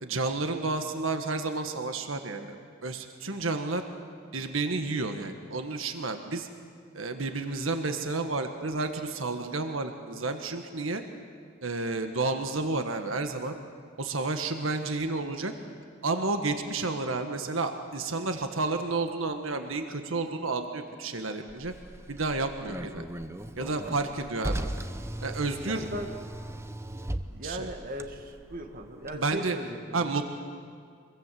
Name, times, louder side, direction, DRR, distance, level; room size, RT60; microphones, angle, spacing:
voice 1, 0.0-3.8 4.3-6.5 6.9-11.0 11.6-13.6 14.0-15.5 16.0-21.7 22.1-23.1 23.6-24.7 25.2-25.9 27.4-27.7 29.1-29.6 29.9-30.3, right 3 dB, 90° right, 6 dB, 1.6 m, -31 dB
Car, 21.5-29.2, right 1 dB, 15° right, 0.8 m, -38 dB
voice 2, 25.6-26.1 26.9-30.1, right 1 dB, 45° right, 4 dB, 2.1 m, -38 dB
26.0 x 22.5 x 7.7 m, 2.1 s
head